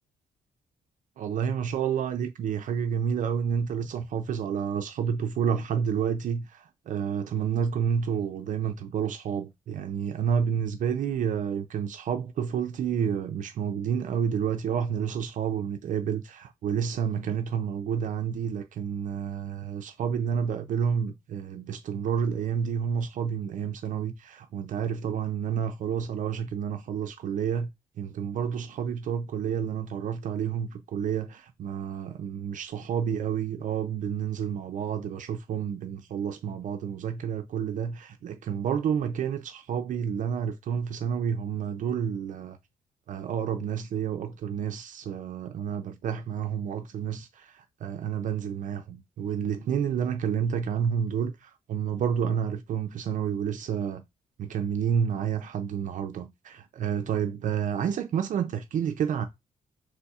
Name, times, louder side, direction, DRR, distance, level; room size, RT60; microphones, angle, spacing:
voice 1, 1.2-27.7 28.0-42.6 43.1-54.0 54.4-59.3, right 7 dB, 60° right, 0.4 m, -30 dB
4.7 x 4.0 x 2.4 m
cardioid pair, 115°, 15 cm